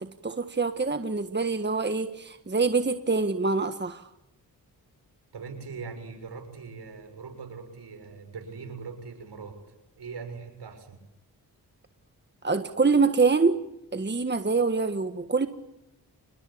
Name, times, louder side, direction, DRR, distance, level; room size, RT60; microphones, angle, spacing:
voice 1, 0.0-4.0 12.4-13.6 13.9-15.5, right 4 dB, 25° right, 9 dB, 1.5 m, -25 dB
voice 2, 5.3-9.6 10.0-11.0, right 5 dB, 80° right, 5 dB, 6.7 m, -41 dB
27.0 x 21.0 x 8.7 m, 0.87 s
cardioid pair, 55°, 40 cm